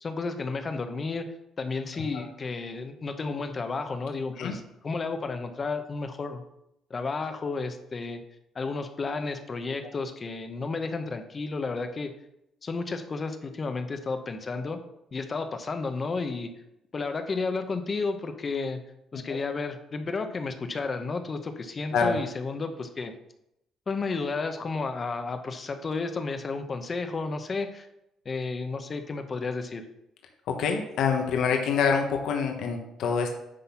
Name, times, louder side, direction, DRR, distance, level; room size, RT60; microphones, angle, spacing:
voice 1, 0.0-1.2 1.6-6.4 6.9-8.2 8.5-12.1 12.6-14.8 15.1-16.5 16.9-18.8 19.1-23.1 23.9-27.9 28.2-29.8, left 4 dB, 35° left, 7 dB, 0.9 m, -32 dB
voice 2, 1.9-2.2 4.4-4.6 19.3-19.4 21.9-22.2 30.5-33.3, left 6 dB, 75° left, 3 dB, 1.2 m, -26 dB
9.8 x 4.1 x 5.7 m, 0.83 s
cardioid pair, 105°, 0 cm